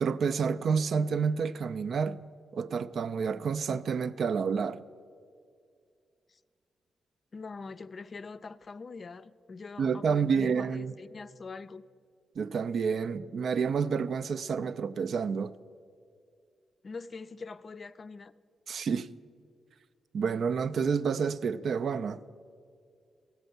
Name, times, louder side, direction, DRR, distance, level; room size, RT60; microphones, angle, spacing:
voice 1, 0.0-2.2 2.5-4.8 9.8-10.9 12.4-15.5 18.7-19.1 20.1-22.2, right 6 dB, 70° right, 0.4 m, -29 dB
voice 2, 7.3-11.8 16.8-18.3, left 4 dB, 45° left, 0.4 m, -43 dB
15.0 x 5.3 x 7.9 m
cardioid pair, 70°, 0 cm